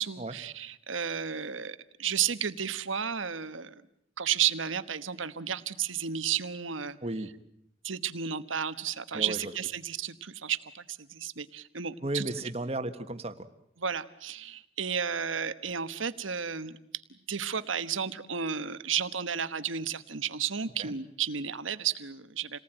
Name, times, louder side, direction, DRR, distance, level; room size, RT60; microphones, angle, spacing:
voice 1, 0.0-3.7 4.2-7.0 7.8-12.3 13.8-16.7 17.3-22.6, right 8 dB, 90° right, 12 dB, 1.3 m, -32 dB
voice 2, 9.1-9.5 12.0-13.5 20.8-20.9, right 1 dB, 30° right, 9 dB, 1.5 m, -34 dB
28.5 x 19.0 x 9.1 m, 0.78 s
head